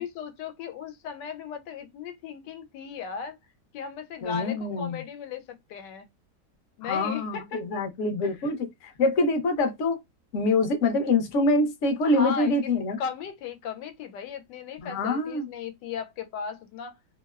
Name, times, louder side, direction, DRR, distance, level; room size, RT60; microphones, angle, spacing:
voice 1, 0.0-3.4 3.7-6.1 6.8-7.8 8.2-8.5 12.0-12.5 13.0-17.0, left 6 dB, 85° left, 1.2 m, -36 dB
voice 2, 4.2-5.0 6.8-10.0 10.3-13.0 14.8-15.5, left 2 dB, 60° left, 0.9 m, -25 dB
2.8 x 2.0 x 2.3 m
omnidirectional pair, 1.8 m